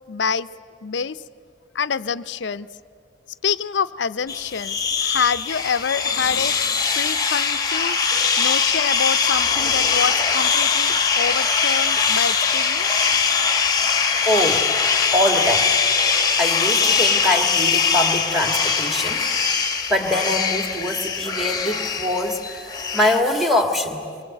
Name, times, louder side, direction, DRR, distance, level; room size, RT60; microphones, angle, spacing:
voice 1, 0.1-0.5 0.8-1.2 1.7-2.7 3.4-6.6 6.9-8.0 8.4-12.9, left 6 dB, 75° left, 15 dB, 0.6 m, -26 dB
sound 1, 4.3-23.2, left 5 dB, 20° left, 1.2 m, -21 dB
voice 2, 14.3-14.7 15.1-15.8 16.4-19.4 19.9-24.1, left 1 dB, ahead, 5 dB, 2.0 m, -23 dB
25.0 x 22.5 x 7.8 m, 2.3 s
head